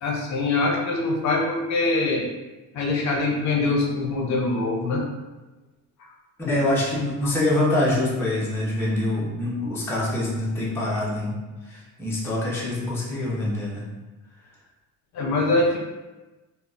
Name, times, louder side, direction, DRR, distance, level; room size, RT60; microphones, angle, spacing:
voice 1, 0.0-2.3 2.7-5.1 6.0-6.1 6.5-6.6 15.1-15.8, left 2 dB, 60° left, 0 dB, 0.5 m, -23 dB
voice 2, 6.4-11.4 11.7-13.8, left 1 dB, 10° left, -7 dB, 0.5 m, -25 dB
3.8 x 2.0 x 2.3 m, 1.1 s
cardioid pair, 170°, 32 cm